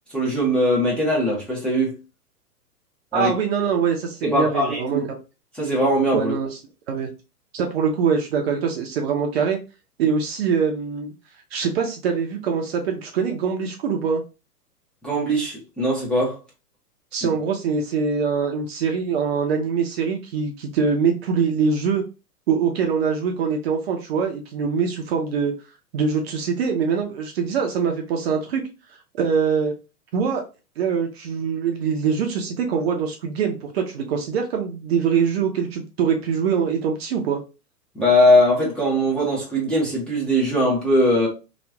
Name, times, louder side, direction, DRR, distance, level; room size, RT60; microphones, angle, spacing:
voice 1, 0.1-1.9 3.1-3.3 4.2-5.0 5.6-6.3 15.0-16.4 17.2-17.4 37.9-41.3, equal, ahead, 0.8 m, -20 dB
voice 2, 3.1-5.1 6.1-6.5 6.9-7.1 7.5-9.6 10.0-11.1 11.5-14.2 17.1-22.0 22.5-25.5 25.9-28.6 29.1-29.7 30.1-30.4 30.8-37.4, right 6 dB, 40° right, 0.7 m, -23 dB
2.9 x 2.4 x 3.4 m
figure-of-eight pair, 115°, 47 cm